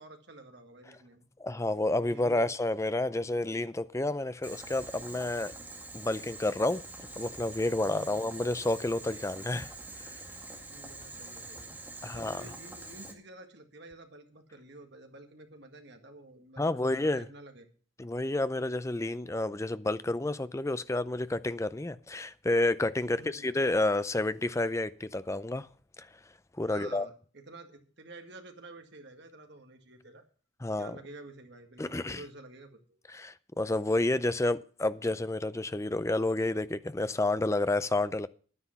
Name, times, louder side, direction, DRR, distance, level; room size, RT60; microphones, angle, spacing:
voice 1, 0.0-1.3 2.0-2.5 7.8-8.3 10.6-11.7 12.1-17.7 23.1-23.5 26.7-30.2 30.6-32.8, right 2 dB, 55° right, 1.8 m, -50 dB
voice 2, 1.4-5.5 5.9-6.8 7.2-9.7 12.0-12.5 16.6-17.2 18.0-25.7 26.0-26.1 26.6-27.1 30.6-31.0 31.8-32.2 33.1-38.3, left 2 dB, 15° left, 0.4 m, -30 dB
Boiling, 4.4-13.1, right 2 dB, 10° right, 2.0 m, -45 dB
10.5 x 9.7 x 5.7 m
head